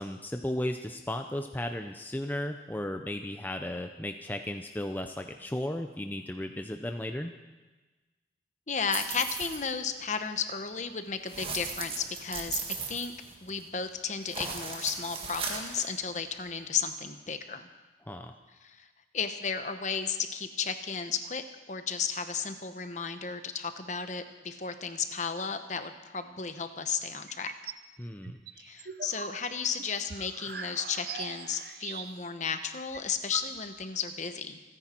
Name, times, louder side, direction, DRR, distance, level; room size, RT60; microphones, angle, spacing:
voice 1, 0.0-7.3 18.0-18.4 28.0-28.4, left 1 dB, 10° left, 5 dB, 0.5 m, -35 dB
voice 2, 8.7-12.6 12.9-13.1 13.4-17.7 18.6-18.9 19.1-27.5 28.6-34.6, left 6 dB, 40° left, 8 dB, 1.0 m, -34 dB
sound 1, 8.9-9.7 11.3-13.7 14.2-15.9, right 5 dB, 30° right, 1.8 m, -37 dB
sound 2, 27.3-27.9 28.2-32.4 32.7-32.8 32.9-33.9, right 5 dB, 55° right, 0.7 m, -42 dB
27.5 x 10.0 x 4.4 m, 1.2 s
head